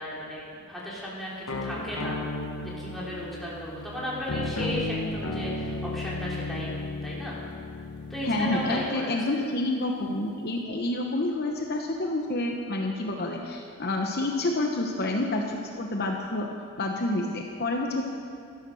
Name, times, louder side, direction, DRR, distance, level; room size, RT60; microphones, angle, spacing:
voice 1, 0.0-2.2 2.6-7.4 8.1-9.4, equal, ahead, -7 dB, 2.9 m, -35 dB
sound 1, 1.5-8.9, left 2 dB, 75° left, 1.0 m, -34 dB
voice 2, 8.2-16.5 16.8-18.0, left 2 dB, 45° left, 1 dB, 0.9 m, -28 dB
13.0 x 11.0 x 6.3 m, 2.3 s
head